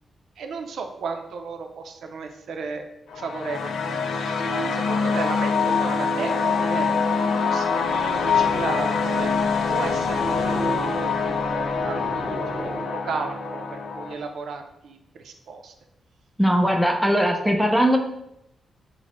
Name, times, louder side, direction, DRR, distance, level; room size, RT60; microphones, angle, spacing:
voice 1, 0.4-2.9 3.2-3.7 4.7-6.9 7.3-9.3 9.7-15.7, right 5 dB, 70° right, 5 dB, 0.4 m, -34 dB
sound 1, 3.1-14.1, left 5 dB, 80° left, 0.4 m, -24 dB
Purr, 7.6-13.3, right 1 dB, 20° right, 0.7 m, -37 dB
voice 2, 16.4-18.0, equal, ahead, 3 dB, 0.3 m, -19 dB
5.9 x 2.1 x 3.0 m, 0.83 s
wide cardioid pair, 175°, 0 cm